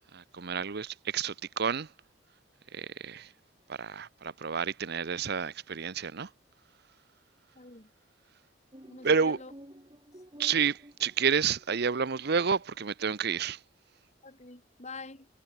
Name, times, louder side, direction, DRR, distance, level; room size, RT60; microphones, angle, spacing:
voice 1, 0.1-1.9 2.7-3.3 3.7-6.3 9.0-9.4 10.4-13.6, right 6 dB, 55° right, 0.7 m, -30 dB
voice 2, 7.6-7.9 8.9-9.5 14.2-15.3, left 3 dB, 35° left, 3.5 m, -46 dB
sound 1, 8.7-12.4, equal, 25° right, 4.9 m, -52 dB
head